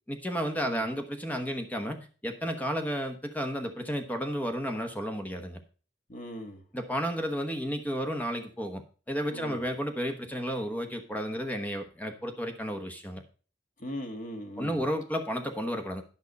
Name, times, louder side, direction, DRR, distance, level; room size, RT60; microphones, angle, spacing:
voice 1, 0.1-2.0 2.2-5.6 6.7-13.2 14.6-16.0, equal, 10° left, 5 dB, 1.1 m, -32 dB
voice 2, 6.1-6.6 9.3-9.7 13.8-14.8, equal, 45° left, 4 dB, 1.7 m, -39 dB
11.0 x 5.5 x 5.3 m, 0.38 s
head